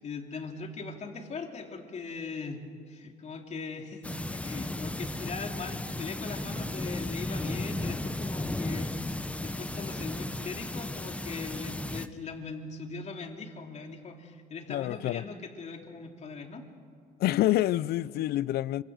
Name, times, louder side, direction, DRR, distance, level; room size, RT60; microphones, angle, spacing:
voice 1, 0.0-2.6 2.9-16.6, left 4 dB, 40° left, 3.0 m, -40 dB
sound 1, 4.0-12.1, left 1 dB, 5° left, 0.8 m, -35 dB
voice 2, 14.7-15.2 17.2-18.8, left 14 dB, 65° left, 0.5 m, -27 dB
26.0 x 24.5 x 6.4 m
cardioid pair, 110°, 17 cm